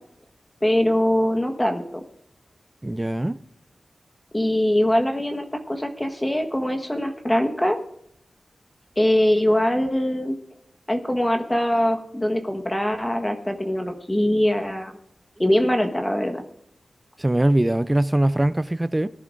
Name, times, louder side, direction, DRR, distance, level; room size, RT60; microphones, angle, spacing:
voice 1, 0.6-2.0 4.3-7.8 9.0-10.4 10.9-14.9 15.4-16.4, left 1 dB, 15° left, 1.3 m, -22 dB
voice 2, 2.8-3.4 17.2-19.1, right 1 dB, 20° right, 0.4 m, -21 dB
18.5 x 10.5 x 2.5 m
cardioid pair, 50°, 0 cm